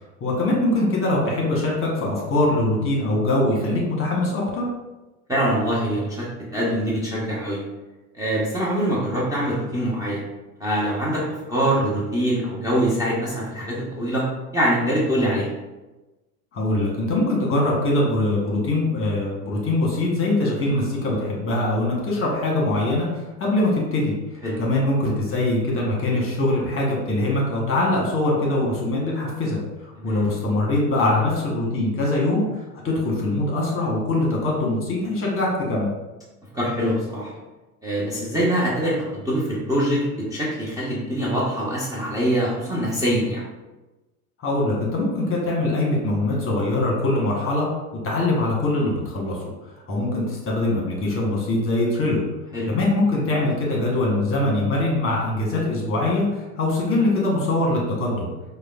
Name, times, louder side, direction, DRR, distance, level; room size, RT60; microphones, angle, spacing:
voice 1, 0.2-4.6 16.5-24.1 24.6-35.9 44.4-47.7 48.0-49.4 49.9-52.2 52.7-58.3, left 2 dB, 30° left, -2 dB, 1.1 m, -22 dB
voice 2, 5.3-6.3 6.5-7.6 8.2-10.2 10.6-14.2 14.5-15.5 24.4-24.6 30.0-30.3 36.5-37.3 37.8-40.0 40.3-43.4 52.5-52.7, equal, 10° right, -8 dB, 0.8 m, -24 dB
4.8 x 2.3 x 2.4 m, 1.1 s
hypercardioid pair, 85°, 44 cm